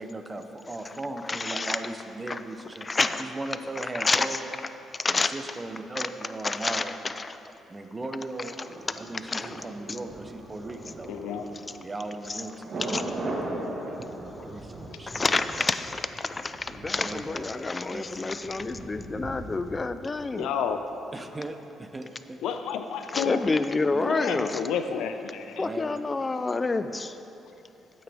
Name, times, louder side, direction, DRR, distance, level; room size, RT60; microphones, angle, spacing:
voice 1, 0.0-2.9 3.2-4.4 5.1-6.9 7.7-8.6 9.0-11.1 11.8-13.2 13.9-15.2 16.9-18.1 21.1-22.4 23.9-24.1 25.6-26.0, right 2 dB, 20° right, 7 dB, 0.6 m, -38 dB
voice 2, 1.2-1.8 2.3-2.4 2.8-3.2 3.8-4.4 5.0-5.3 6.0-6.1 6.4-7.4 8.6-8.7 9.3-10.0 12.3-12.4 12.9-13.1 15.1-20.5 23.1-24.6 25.6-27.1, left 3 dB, 25° left, 11 dB, 0.4 m, -29 dB
Thunder, 8.6-20.5 20.8-20.9, right 2 dB, 45° right, 1.2 m, -39 dB
voice 3, 11.1-11.5 20.3-20.8 22.4-23.4 24.0-25.7, left 7 dB, 85° left, 7 dB, 0.5 m, -30 dB
8.9 x 8.6 x 3.5 m, 2.8 s
cardioid pair, 90°, 0 cm